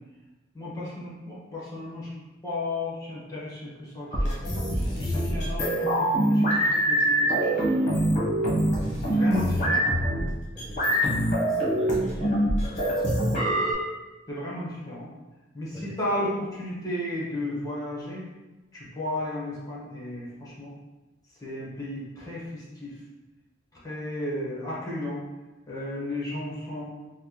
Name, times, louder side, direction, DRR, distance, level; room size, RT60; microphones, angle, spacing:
voice 1, 0.5-2.1 2.4-4.5 5.0-8.1 9.0-9.9 12.7-13.1 14.3-15.1 15.5-18.2 18.7-20.7 21.4-22.9 23.8-25.2 25.7-26.8, left 1 dB, 20° left, -7 dB, 1.1 m, -34 dB
sound 1, 4.1-13.7, right 1 dB, 40° left, 1.0 m, -24 dB
voice 2, 10.5-13.7 15.7-16.2, equal, ahead, -10 dB, 0.5 m, -43 dB
4.3 x 2.1 x 2.9 m, 1.1 s
head